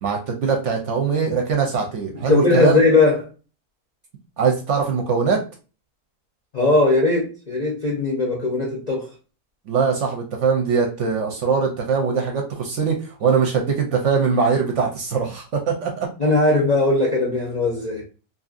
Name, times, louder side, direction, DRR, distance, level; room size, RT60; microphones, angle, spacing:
voice 1, 0.0-2.8 4.4-5.4 9.7-16.1, right 5 dB, 60° right, 2 dB, 0.8 m, -21 dB
voice 2, 2.1-3.3 6.5-9.1 16.2-18.0, left 2 dB, 50° left, -2 dB, 0.5 m, -19 dB
2.7 x 2.6 x 2.4 m, 0.34 s
omnidirectional pair, 1.6 m